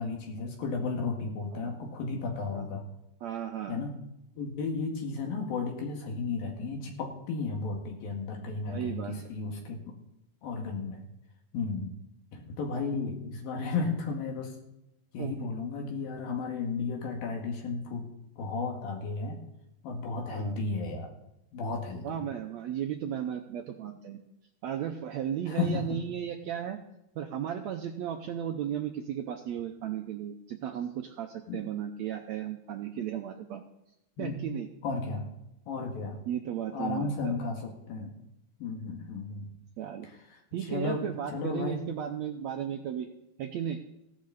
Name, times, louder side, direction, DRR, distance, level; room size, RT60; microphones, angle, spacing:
voice 1, 0.0-2.8 3.7-3.9 4.4-9.9 10.4-11.0 11.5-11.9 12.3-14.5 15.1-18.1 18.4-19.4 19.8-21.1 21.5-22.1 25.5-26.0 31.5-31.6 34.2-34.4 34.8-35.3 35.7-36.2 36.7-38.1 38.6-39.5 40.0-40.2 40.7-41.8, left 4 dB, 85° left, 1 dB, 3.8 m, -33 dB
voice 2, 3.2-3.8 8.7-9.1 15.2-15.5 20.3-20.6 22.0-24.2 24.6-26.8 27.2-33.6 34.2-34.7 36.2-37.4 39.8-40.1 40.5-43.1 43.4-43.8, right 9 dB, 80° right, 4 dB, 1.6 m, -35 dB
16.0 x 11.5 x 4.2 m, 0.87 s
omnidirectional pair, 4.1 m